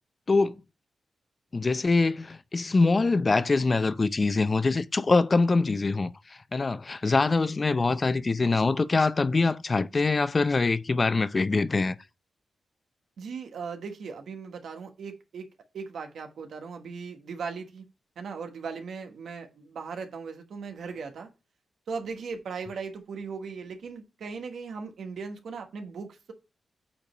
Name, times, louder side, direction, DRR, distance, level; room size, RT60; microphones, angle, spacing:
voice 1, 1.5-12.0, left 3 dB, 40° left, 0.5 m, -24 dB
voice 2, 13.2-15.5 15.7-17.8 18.2-21.3 21.9-26.3, right 5 dB, 80° right, 1.2 m, -38 dB
8.5 x 2.9 x 5.4 m
cardioid pair, 65°, 0 cm